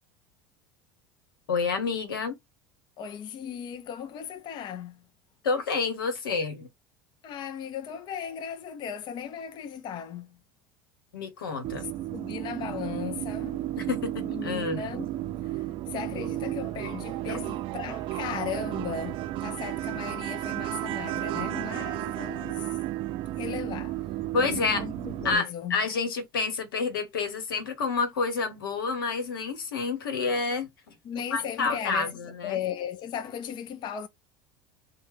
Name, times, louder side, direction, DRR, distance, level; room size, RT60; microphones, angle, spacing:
voice 1, 1.5-2.4 5.4-6.7 11.1-11.8 13.8-14.8 17.3-17.4 24.3-24.8 25.2-30.9 31.3-32.6, left 4 dB, 85° left, 1.0 m, -29 dB
voice 2, 3.0-5.0 7.2-10.3 11.8-13.6 14.2-22.7 23.3-24.0 24.4-25.8 31.0-34.1, left 8 dB, 40° left, 0.4 m, -37 dB
sound 1, 11.6-25.4, right 15 dB, 50° right, 0.4 m, -33 dB
3.0 x 2.1 x 3.3 m
hypercardioid pair, 85°, 11 cm